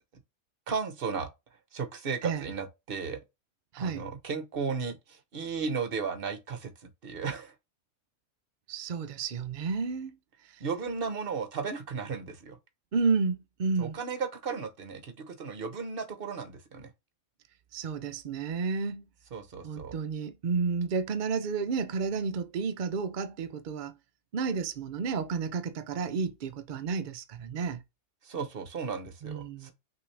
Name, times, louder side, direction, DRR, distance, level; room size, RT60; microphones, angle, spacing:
voice 1, 0.7-1.3 1.7-3.2 3.8-6.7 7.0-7.5 10.6-12.6 13.8-16.9 19.3-19.9 28.2-29.7, right 5 dB, 50° right, 0.9 m, -35 dB
voice 2, 3.7-4.1 8.7-10.1 12.9-14.0 17.7-19.0 19.6-23.9 24.3-27.8 29.2-29.7, right 5 dB, 75° right, 0.4 m, -31 dB
5.8 x 2.8 x 3.2 m
omnidirectional pair, 1.5 m